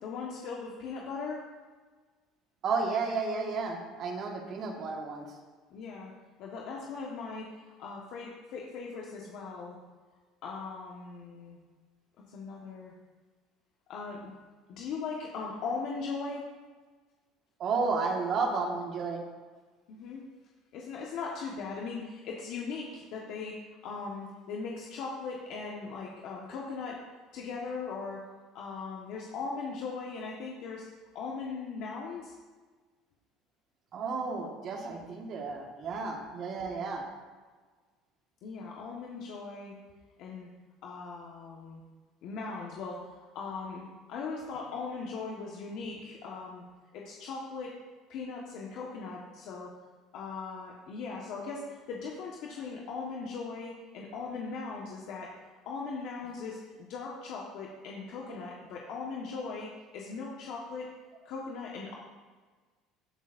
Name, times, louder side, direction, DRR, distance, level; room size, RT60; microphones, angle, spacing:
voice 1, 0.0-1.4 5.7-6.1 6.4-9.8 10.4-11.6 12.3-12.9 13.9-14.3 14.7-16.5 19.9-20.2 20.7-23.6 23.8-27.0 27.3-28.2 28.5-30.9 31.1-32.3 38.4-39.7 40.2-40.5 40.8-41.8 42.2-46.6 46.9-47.7 48.1-49.7 50.1-55.3 55.6-60.9 61.2-61.9, left 4 dB, 65° left, -2 dB, 1.5 m, -39 dB
voice 2, 2.6-5.3 17.6-19.2 33.9-37.0, right 4 dB, 50° right, 1 dB, 1.7 m, -32 dB
17.0 x 8.1 x 2.7 m, 1.4 s
supercardioid pair, 115°, 0 cm